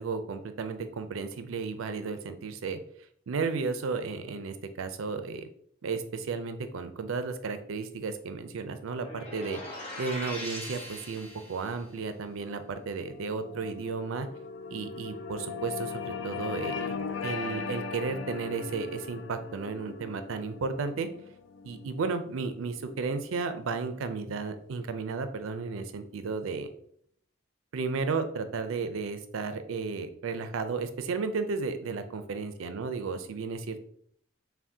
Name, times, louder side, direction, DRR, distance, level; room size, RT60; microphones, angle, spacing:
voice 1, 0.0-2.8 3.3-5.5 5.8-14.3 14.7-16.9 17.2-21.1 21.6-26.7 27.7-33.8, right 4 dB, 85° right, 10 dB, 0.4 m, -33 dB
sound 1, 9.0-11.8, equal, 30° left, 0.8 m, -40 dB
sound 2, 11.1-23.7, left 5 dB, 70° left, 0.3 m, -40 dB
5.8 x 2.1 x 2.7 m, 0.65 s
head